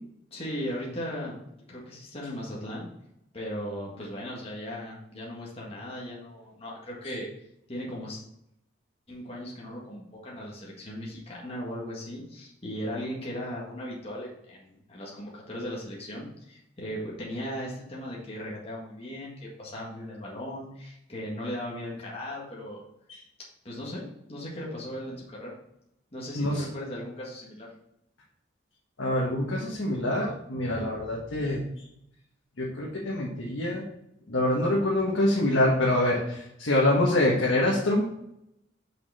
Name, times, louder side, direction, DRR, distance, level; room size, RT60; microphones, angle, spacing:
voice 1, 0.3-1.4 1.7-2.9 3.3-7.3 7.7-8.2 9.1-22.8 23.6-25.5 26.1-27.7, equal, 30° left, -4 dB, 1.8 m, -37 dB
voice 2, 29.0-31.8 32.6-33.8 34.3-38.1, left 1 dB, 80° left, -3 dB, 1.4 m, -25 dB
6.0 x 5.9 x 4.3 m, 0.79 s
head